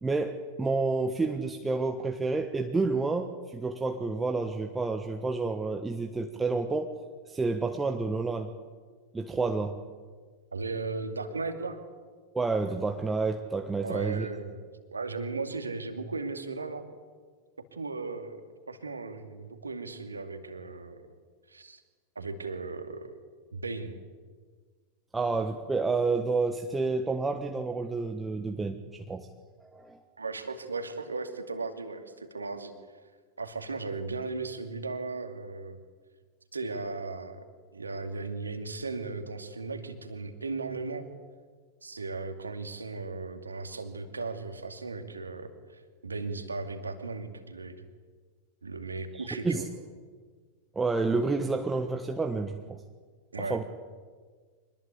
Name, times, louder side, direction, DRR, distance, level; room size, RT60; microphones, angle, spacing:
voice 1, 0.0-6.9 7.3-8.5 9.1-9.8 12.3-14.3 25.1-29.3 29.6-30.0 49.1-49.6 50.7-52.8 53.4-53.6, right 3 dB, 10° right, 5 dB, 1.4 m, -29 dB
voice 2, 10.5-11.8 13.8-14.6 14.9-16.9 17.7-18.4 18.7-21.1 21.5-21.8 22.2-23.1 23.5-23.9 30.2-32.7 33.4-35.8 36.5-37.4 37.7-41.1 41.8-47.8 48.6-49.7 53.3-53.6, right 3 dB, 75° right, 6 dB, 2.5 m, -36 dB
25.5 x 20.5 x 8.5 m, 1.5 s
figure-of-eight pair, 90°, 0 cm